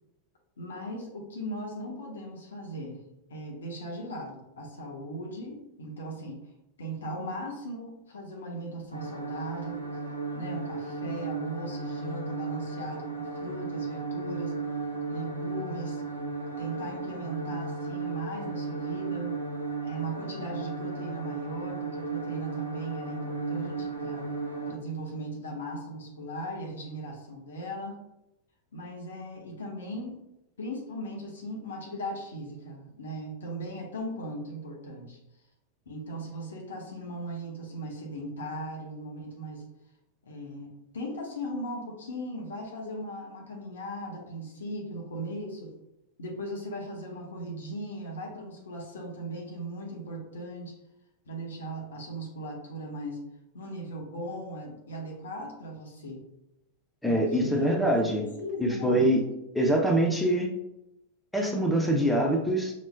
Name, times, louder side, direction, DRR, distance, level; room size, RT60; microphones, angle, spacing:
voice 1, 0.6-3.0 3.3-6.4 6.8-9.8 10.3-14.6 15.1-16.0 16.6-19.4 19.8-24.3 24.7-28.0 28.7-30.2 30.6-35.2 35.9-39.6 40.2-45.7 46.2-50.8 51.2-53.2 53.5-56.2 57.1-59.1, right 1 dB, 65° left, 0 dB, 1.0 m, -38 dB
sound 1, 8.9-24.7, right 3 dB, 85° right, 0.8 m, -35 dB
voice 2, 57.0-58.3 58.6-59.2 59.5-60.5 61.3-62.7, right 1 dB, 5° left, 0 dB, 0.7 m, -24 dB
5.7 x 3.1 x 2.2 m, 0.86 s
figure-of-eight pair, 90°, 0 cm